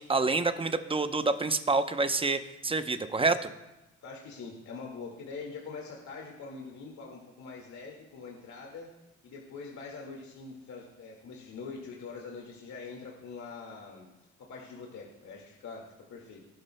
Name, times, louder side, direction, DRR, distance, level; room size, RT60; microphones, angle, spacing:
voice 1, 0.0-3.5, right 3 dB, 20° right, 10 dB, 0.7 m, -27 dB
voice 2, 4.0-8.9 9.2-14.1 14.5-15.8 16.1-16.4, left 4 dB, 70° left, -1 dB, 2.0 m, -43 dB
19.0 x 12.0 x 2.2 m, 1.0 s
cardioid pair, 90°, 30 cm